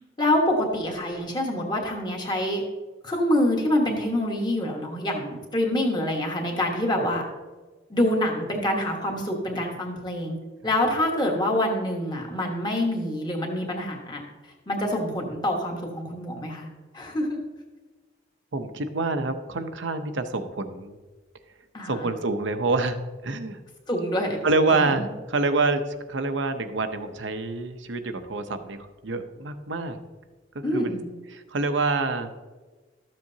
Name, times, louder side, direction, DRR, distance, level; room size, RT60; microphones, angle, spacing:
voice 1, 0.2-2.6 3.0-7.2 7.9-10.4 10.6-14.2 14.7-16.7 16.9-17.4 21.7-22.1 23.9-24.4 24.7-25.0 30.6-31.0, left 1 dB, 25° left, 0 dB, 1.4 m, -26 dB
voice 2, 18.5-21.0 21.9-23.6 24.4-30.0 30.7-31.0 31.3-32.3, right 3 dB, 85° right, 8 dB, 0.8 m, -27 dB
13.0 x 7.5 x 2.8 m, 1.3 s
head